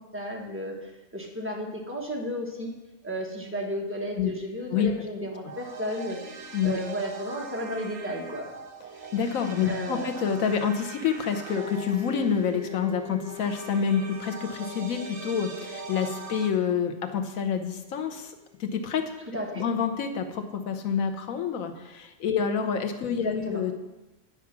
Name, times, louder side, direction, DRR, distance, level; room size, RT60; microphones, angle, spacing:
voice 1, 0.1-2.7 3.0-8.5 9.6-10.1 19.3-19.6 23.2-23.6, equal, 10° right, -2 dB, 1.3 m, -33 dB
sound 1, 5.4-16.5, right 4 dB, 60° right, 1.1 m, -42 dB
voice 2, 9.1-18.3 18.6-19.1 19.5-23.8, left 7 dB, 85° left, 6 dB, 1.2 m, -28 dB
sound 2, 11.5-19.0, left 8 dB, 40° right, 3.4 m, -44 dB
9.6 x 4.8 x 5.9 m, 1.0 s
omnidirectional pair, 1.4 m